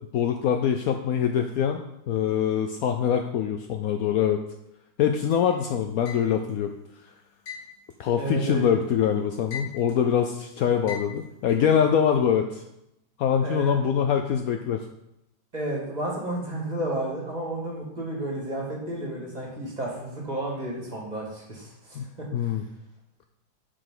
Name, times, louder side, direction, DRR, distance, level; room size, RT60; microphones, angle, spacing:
voice 1, 0.1-4.4 5.0-6.7 8.0-12.6 13.2-14.8 21.9-22.6, left 8 dB, 85° left, 5 dB, 0.7 m, -24 dB
sound 1, 5.3-6.6 7.5-8.9 9.2-10.1 10.9-11.8, left 7 dB, 60° left, 2.0 m, -40 dB
voice 2, 8.2-8.7 13.4-13.7 15.5-22.5, right 1 dB, 20° right, -3 dB, 2.1 m, -32 dB
10.5 x 5.1 x 3.8 m, 0.84 s
omnidirectional pair, 2.1 m